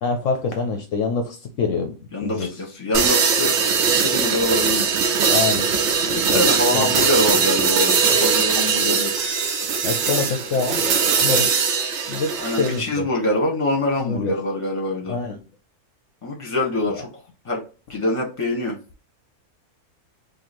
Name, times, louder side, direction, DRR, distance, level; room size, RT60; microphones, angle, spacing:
voice 1, 0.0-2.5 5.3-5.7 6.3-6.4 6.7-7.1 9.8-10.9 11.2-11.5 12.1-13.0 14.0-14.4 15.1-15.4 16.9-17.0, left 4 dB, 65° left, 5 dB, 0.9 m, -25 dB
voice 2, 2.1-3.5 3.9-5.0 6.1-9.1 12.4-15.2 16.2-17.1 17.4-17.6 17.9-18.8, left 1 dB, 25° left, -1 dB, 1.1 m, -24 dB
sound 1, 2.9-12.8, right 6 dB, 60° right, 0.8 m, -20 dB
3.1 x 2.7 x 4.1 m, 0.34 s
omnidirectional pair, 1.6 m